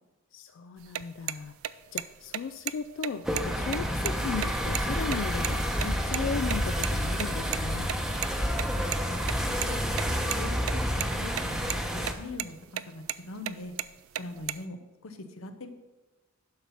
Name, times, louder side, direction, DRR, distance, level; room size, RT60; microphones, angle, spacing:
voice 1, 0.3-1.5 1.9-7.9, left 5 dB, 65° left, 10 dB, 0.3 m, -36 dB
sound 1, 0.8-5.9 6.1-6.2 6.5-6.6 6.8-6.9 7.2-7.3 7.5-7.6 7.9-9.0 9.2-9.7 10.0-10.7 11.0-11.4 11.7-12.1 12.4-12.5 12.8-13.2 13.5-14.6, right 12 dB, 80° right, 0.4 m, -33 dB
sound 2, 3.2-12.1, equal, 5° right, 0.8 m, -29 dB
voice 2, 10.2-12.6 12.9-13.7 14.2-15.7, left 2 dB, 90° left, 8 dB, 0.9 m, -42 dB
11.5 x 4.3 x 5.6 m, 1.1 s
head